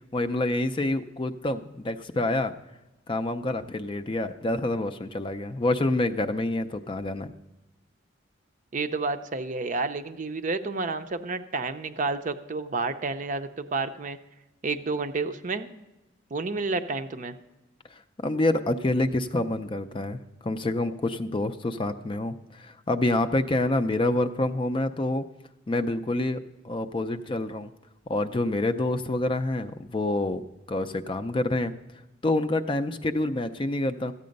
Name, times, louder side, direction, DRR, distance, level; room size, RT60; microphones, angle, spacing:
voice 1, 0.1-2.5 3.1-7.3 18.2-25.2 25.7-26.4 26.6-27.7 28.1-30.4 30.7-31.7 32.2-34.1, left 2 dB, 25° left, 9 dB, 0.4 m, -27 dB
voice 2, 8.7-14.2 14.6-15.7 16.3-17.3, right 3 dB, 40° right, 9 dB, 0.5 m, -30 dB
14.0 x 8.5 x 5.2 m, 1.0 s
head